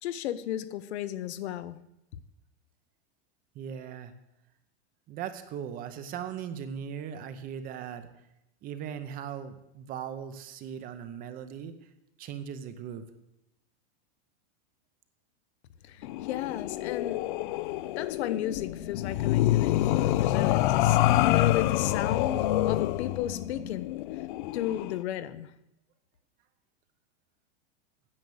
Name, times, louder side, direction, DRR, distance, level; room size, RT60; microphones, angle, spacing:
voice 1, 0.0-1.8 2.1-2.2 15.8-17.2 18.0-23.9 24.5-25.5, left 12 dB, 70° left, 14 dB, 0.8 m, -34 dB
voice 2, 3.5-4.1 5.1-8.1 8.6-11.9 12.2-13.0, right 8 dB, 25° right, 10 dB, 0.8 m, -39 dB
sound 1, 16.0-25.0, left 14 dB, 50° left, 0.5 m, -27 dB
9.8 x 7.8 x 7.0 m, 0.86 s
supercardioid pair, 160°, 34 cm